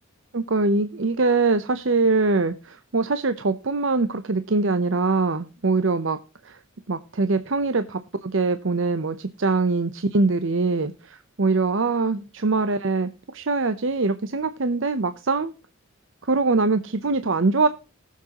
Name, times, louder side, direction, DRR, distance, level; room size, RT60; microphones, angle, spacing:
voice 1, 0.3-6.2 6.4-6.6 6.9-15.5 16.2-17.7, right 3 dB, 60° right, 11 dB, 0.7 m, -23 dB
19.5 x 7.4 x 2.9 m, 0.33 s
head